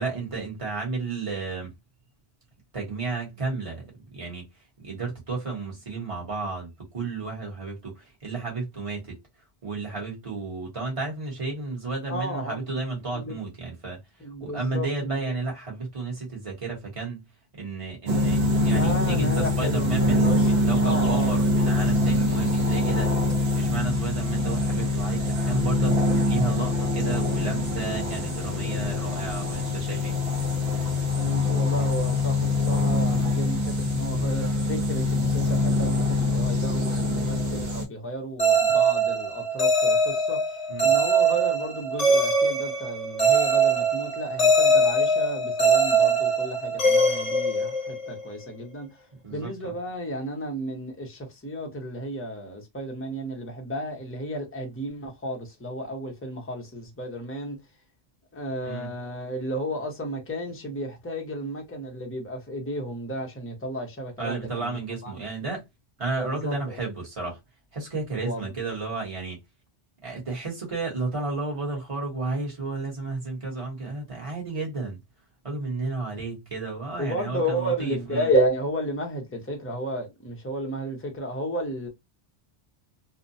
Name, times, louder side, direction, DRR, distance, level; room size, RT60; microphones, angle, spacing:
voice 1, 0.0-1.7 2.7-3.8 4.1-4.5 4.8-9.2 9.6-14.0 14.4-17.2 17.5-23.1 23.5-30.2 40.7-40.9 49.2-49.7 58.6-58.9 64.2-65.6 66.0-67.4 67.7-69.4 70.0-75.0 75.4-78.3, right 3 dB, 30° right, 1.1 m, -32 dB
voice 2, 12.1-12.8 13.1-13.4 14.2-15.2 18.7-20.5 20.8-21.3 31.2-48.9 49.3-57.6 58.3-65.1 66.2-66.8 68.2-68.5 77.0-81.9, right 1 dB, 15° left, 0.6 m, -32 dB
sound 1, 18.1-37.8, left 2 dB, 65° right, 1.0 m, -24 dB
sound 2, 38.4-48.2, right 2 dB, 35° left, 1.0 m, -22 dB
2.7 x 2.1 x 2.6 m
omnidirectional pair, 1.1 m